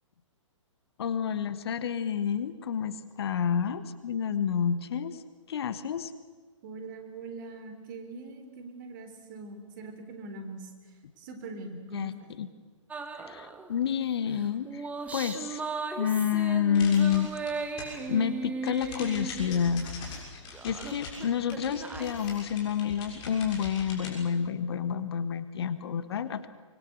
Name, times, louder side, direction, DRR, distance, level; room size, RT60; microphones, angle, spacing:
voice 1, 1.0-5.2 5.5-6.1 11.9-12.1 12.4-12.5 13.3-14.9 15.1-15.6 16.0-17.3 18.1-19.9 20.6-26.5, left 8 dB, 50° left, 13 dB, 1.4 m, -29 dB
voice 2, 6.6-10.7 11.2-12.3, right 3 dB, 40° right, 7 dB, 3.8 m, -42 dB
sound 1, 12.9-13.7 14.4-20.2 20.5-22.4, right 4 dB, 10° right, 1.4 m, -37 dB
sound 2, 16.7-18.1 18.4-24.1, left 4 dB, 30° left, 7.1 m, -42 dB
25.0 x 22.0 x 7.9 m, 1.4 s
figure-of-eight pair, 125°, 16 cm